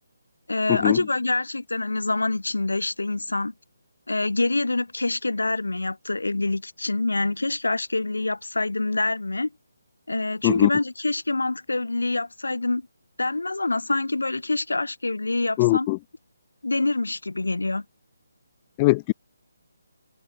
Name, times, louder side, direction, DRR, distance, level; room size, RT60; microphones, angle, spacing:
voice 1, 0.5-3.5 4.1-9.5 10.1-12.8 13.2-15.9 16.6-17.8, left 2 dB, 80° left, 1.8 m, -26 dB
voice 2, 15.6-16.0 18.8-19.1, left 23 dB, 25° left, 0.3 m, -20 dB
figure-of-eight pair, 150°, 0 cm